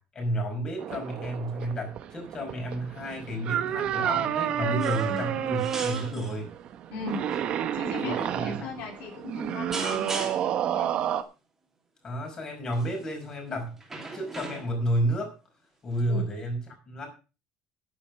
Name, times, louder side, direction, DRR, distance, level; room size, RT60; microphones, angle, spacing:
voice 1, 0.1-6.5 8.0-8.7 12.0-13.8 14.1-15.3 15.8-17.1, right 1 dB, 25° left, 2 dB, 5.2 m, -31 dB
sound 1, 0.8-11.2, right 10 dB, 40° right, 1.2 m, -30 dB
sound 2, 4.8-5.3 5.5-6.4 7.1-7.4 8.3-8.5 9.7-10.6 12.7-13.0 13.8-14.9 16.0-16.1, right 3 dB, 10° right, 3.2 m, -38 dB
voice 2, 6.9-7.2 7.7-10.1 10.6-10.9 16.1-16.3, left 4 dB, 60° left, 1 dB, 3.8 m, -37 dB
11.0 x 10.0 x 5.9 m, 0.33 s
cardioid pair, 175°, 3 cm